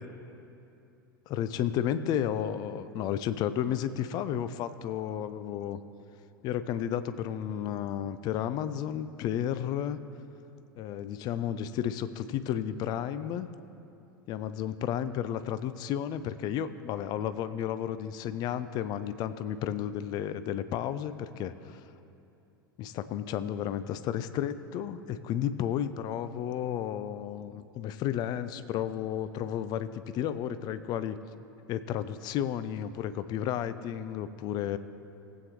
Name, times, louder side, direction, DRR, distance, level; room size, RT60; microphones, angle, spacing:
voice 1, 1.3-5.8 6.4-10.0 10.8-13.5 14.3-21.8 22.8-31.2 31.7-34.8, left 10 dB, 35° left, 13 dB, 0.4 m, -32 dB
18.5 x 8.3 x 3.0 m, 2.7 s
figure-of-eight pair, 80°, 12 cm